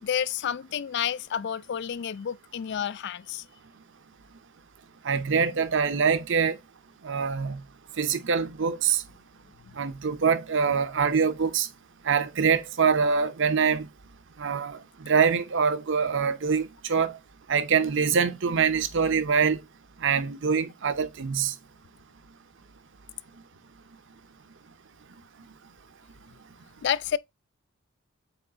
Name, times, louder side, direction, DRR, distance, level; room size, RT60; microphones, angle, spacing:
voice 1, 0.0-3.4 26.8-27.2, left 8 dB, 55° left, 0.3 m, -30 dB
voice 2, 5.0-6.6 7.0-7.6 8.0-9.0 9.8-11.7 12.1-13.9 14.4-17.2 17.5-19.6 20.0-21.5, right 6 dB, 60° right, 0.7 m, -24 dB
8.1 x 3.2 x 3.8 m
head